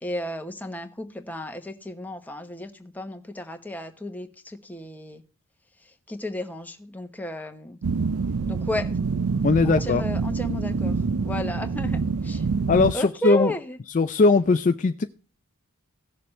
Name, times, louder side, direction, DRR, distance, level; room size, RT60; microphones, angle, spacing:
voice 1, 0.0-5.2 6.1-7.8 8.5-9.0 9.6-11.0 11.2-12.4 12.9-13.8, equal, 10° left, 1.0 m, -33 dB
sound 1, 7.8-12.9, right 4 dB, 80° right, 0.5 m, -26 dB
voice 2, 9.4-10.0 12.7-13.5 13.9-15.0, left 3 dB, 35° left, 0.4 m, -20 dB
17.0 x 6.8 x 3.2 m
head